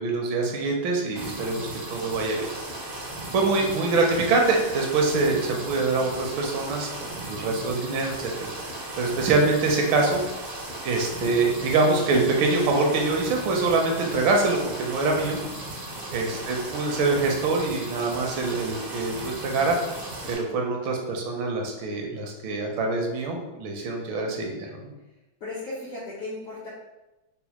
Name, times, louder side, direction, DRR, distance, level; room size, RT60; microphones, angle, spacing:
voice 1, 0.0-2.5 3.3-10.2 10.8-15.4 16.1-20.0 20.3-24.8, right 3 dB, 80° right, 1 dB, 1.4 m, -25 dB
sound 1, 1.1-20.3, right 1 dB, 60° right, 0.6 m, -36 dB
voice 2, 25.4-26.7, left 2 dB, 70° left, -7 dB, 0.7 m, -36 dB
4.1 x 2.1 x 2.9 m, 1.0 s
omnidirectional pair, 2.2 m